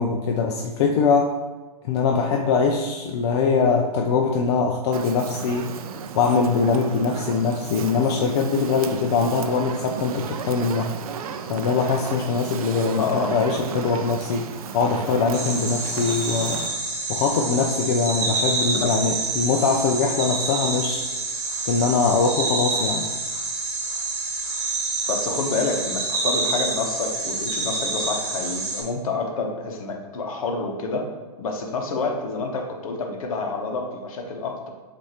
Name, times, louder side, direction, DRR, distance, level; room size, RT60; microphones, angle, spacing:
voice 1, 0.0-1.4 1.8-5.8 6.1-10.9 11.5-14.5 14.7-16.7 17.1-21.1 21.7-23.1, left 4 dB, 45° left, 2 dB, 0.4 m, -22 dB
Fire, 4.9-16.7, right 7 dB, 60° right, 0.5 m, -34 dB
voice 2, 13.0-13.3 18.7-18.9 25.1-31.1 31.4-34.7, left 3 dB, 60° left, 2 dB, 0.9 m, -28 dB
sound 1, 15.3-28.8, right 3 dB, 40° right, 1.2 m, -27 dB
7.3 x 2.6 x 2.8 m, 1.2 s
hypercardioid pair, 135°, 20 cm